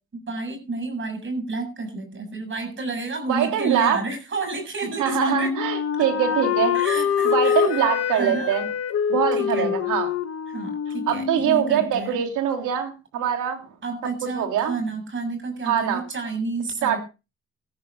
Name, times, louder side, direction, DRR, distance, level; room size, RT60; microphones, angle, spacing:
voice 1, 0.1-5.5 6.7-7.7 8.1-8.5 9.3-9.7 10.5-12.2 13.8-17.0, right 3 dB, 40° right, 6 dB, 6.9 m, -30 dB
voice 2, 3.3-4.0 5.0-8.7 9.1-10.1 11.1-13.6 14.2-14.7 15.6-16.0 16.8-17.0, right 9 dB, 90° right, 4 dB, 3.3 m, -23 dB
Wind instrument woodwind instrument, 5.1-11.9, left 7 dB, 55° left, 1.5 m, -25 dB
19.5 x 13.5 x 2.6 m, 0.29 s
cardioid pair, 90°, 30 cm